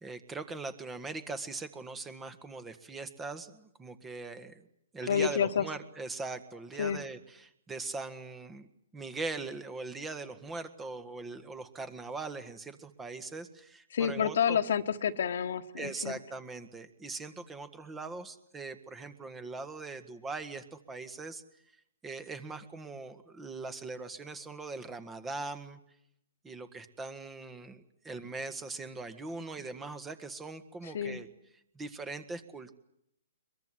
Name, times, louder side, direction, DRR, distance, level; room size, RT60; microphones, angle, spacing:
voice 1, 0.0-4.7 4.9-8.7 8.9-14.6 15.8-21.4 22.0-25.8 26.4-31.3 31.8-32.7, right 3 dB, 15° right, 12 dB, 1.8 m, -41 dB
voice 2, 5.1-5.6 6.8-7.0 13.9-16.1 30.8-31.2, left 8 dB, 65° left, 9 dB, 1.6 m, -29 dB
22.5 x 22.5 x 10.0 m, 0.76 s
hypercardioid pair, 130°, 0 cm